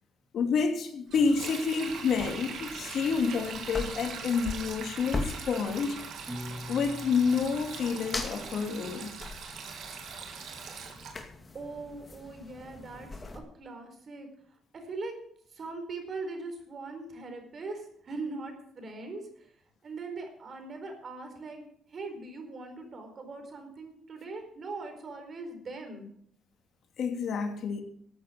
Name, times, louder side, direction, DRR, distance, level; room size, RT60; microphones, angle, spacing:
voice 1, 0.3-6.0 6.7-9.1 27.0-27.8, left 5 dB, 65° left, 2.6 m, -29 dB
Sink (filling or washing), 1.1-11.1, right 6 dB, 75° right, 3.0 m, -42 dB
sound 1, 1.8-13.4, left 3 dB, 30° left, 2.3 m, -42 dB
Piano, 6.3-8.5, left 1 dB, 10° right, 3.6 m, -44 dB
voice 2, 11.5-13.1 13.3-14.3 14.7-15.1 15.5-19.2 19.8-21.6 21.9-26.1, right 3 dB, 50° right, 4.6 m, -40 dB
14.0 x 8.5 x 7.6 m
cardioid pair, 90°, 0 cm